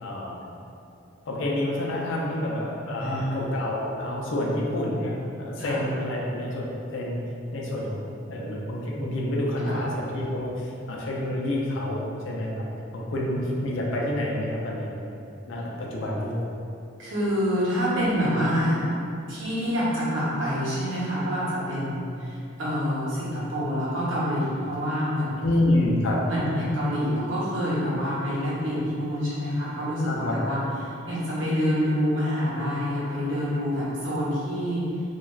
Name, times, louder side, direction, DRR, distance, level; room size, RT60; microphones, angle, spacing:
voice 1, 0.0-0.4 1.3-7.2 7.5-8.0 8.3-12.7 12.9-14.9 15.5-16.4 25.4-26.2 30.0-30.3, left 1 dB, 70° left, -3 dB, 0.4 m, -28 dB
voice 2, 2.9-3.5 5.6-5.8 9.6-9.8 13.1-13.5 17.0-18.8 19.3-25.3 26.3-34.9, equal, 65° right, -9 dB, 0.9 m, -27 dB
3.1 x 2.3 x 2.3 m, 2.7 s
head